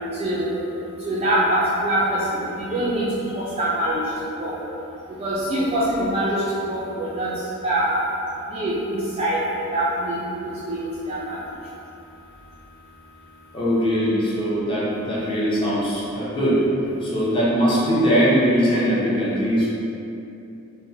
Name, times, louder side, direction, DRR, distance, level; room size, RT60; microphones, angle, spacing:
voice 1, 0.1-0.6 1.0-3.1 3.3-4.0 4.4-4.6 5.2-7.3 7.6-8.0 8.5-11.4, right 1 dB, 25° right, -8 dB, 0.3 m, -24 dB
voice 2, 13.5-16.6 17.0-19.7, equal, 25° left, -9 dB, 0.6 m, -21 dB
2.9 x 2.1 x 2.6 m, 2.8 s
head